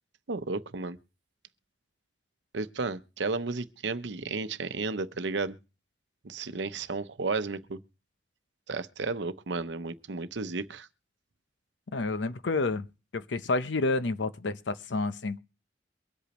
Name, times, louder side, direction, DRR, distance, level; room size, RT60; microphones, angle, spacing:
voice 1, 0.3-1.0 2.5-5.6 6.2-7.8 8.7-10.9, right 3 dB, 85° right, 0.8 m, -33 dB
voice 2, 11.9-12.9 13.1-15.4, left 3 dB, 90° left, 0.7 m, -29 dB
23.5 x 8.3 x 3.0 m
head